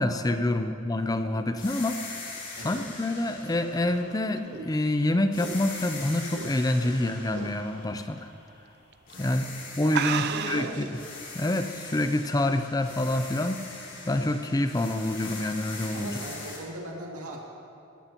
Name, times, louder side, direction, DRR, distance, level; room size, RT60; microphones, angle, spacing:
voice 1, 0.0-2.2 2.6-8.3 9.2-9.4 9.8-10.9 11.3-13.6 14.1-16.2, left 1 dB, 15° left, 8 dB, 0.4 m, -27 dB
sound 1, 1.6-4.9 5.3-8.7 9.1-16.6, left 3 dB, 55° left, 3.6 m, -42 dB
sound 2, 3.8-6.9 7.3-7.6 8.0-8.1 8.9-9.1 9.4-9.5 9.9-10.9, right 8 dB, 50° right, 0.4 m, -33 dB
voice 2, 9.8-10.9 15.9-17.4, right 1 dB, 85° right, -1 dB, 2.3 m, -39 dB
20.5 x 14.5 x 2.9 m, 2.5 s
head